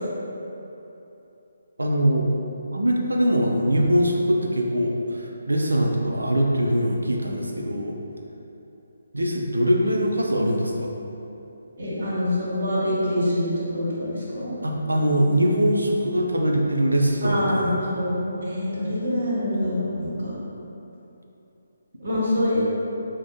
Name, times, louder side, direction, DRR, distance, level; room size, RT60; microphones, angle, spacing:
voice 1, 1.8-2.3 2.7-8.0 9.1-10.9 14.6-17.8, equal, 80° right, 0 dB, 0.4 m, -22 dB
voice 2, 11.8-14.5 17.2-20.3 22.0-22.6, left 1 dB, 60° right, -8 dB, 1.2 m, -25 dB
4.6 x 2.1 x 2.6 m, 3.0 s
figure-of-eight pair, 145°, 0 cm